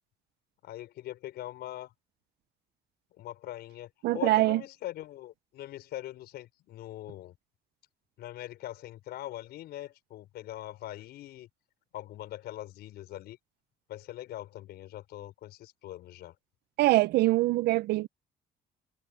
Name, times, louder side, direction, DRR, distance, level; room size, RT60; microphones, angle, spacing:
voice 1, 0.6-1.9 3.1-7.3 8.2-11.5 11.9-13.4 13.9-16.3, left 14 dB, 75° left, 5.5 m, -42 dB
voice 2, 4.0-4.6 16.8-18.1, right 18 dB, 75° right, 0.5 m, -24 dB
cardioid pair, 110°, 17 cm